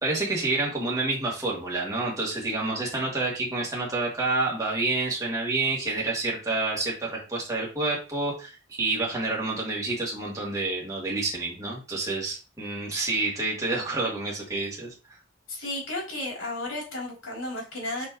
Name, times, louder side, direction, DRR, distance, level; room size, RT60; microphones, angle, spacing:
voice 1, 0.0-14.9, right 2 dB, 15° right, -4 dB, 2.3 m, -28 dB
voice 2, 15.5-18.1, left 1 dB, 85° left, -3 dB, 3.5 m, -33 dB
6.6 x 4.7 x 3.1 m, 0.33 s
head